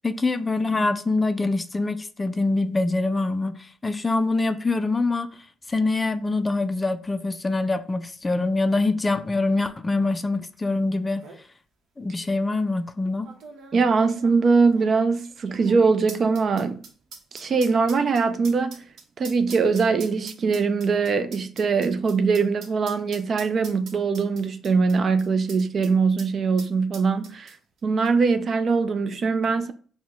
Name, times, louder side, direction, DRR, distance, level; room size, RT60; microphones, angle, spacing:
voice 1, 0.0-5.3 5.7-11.2 12.0-13.3, left 3 dB, 20° left, 0.3 m, -24 dB
sound 1, 10.7-10.8 11.0-11.4 12.2-12.3 13.2-25.9 26.2-26.3 26.6-27.8 28.1-28.2, right 4 dB, 75° right, 0.8 m, -44 dB
voice 2, 13.7-16.8 17.3-18.8 19.2-27.6 27.8-29.7, right 4 dB, 50° right, 0.4 m, -22 dB
4.6 x 2.1 x 3.6 m
cardioid pair, 90°, 0 cm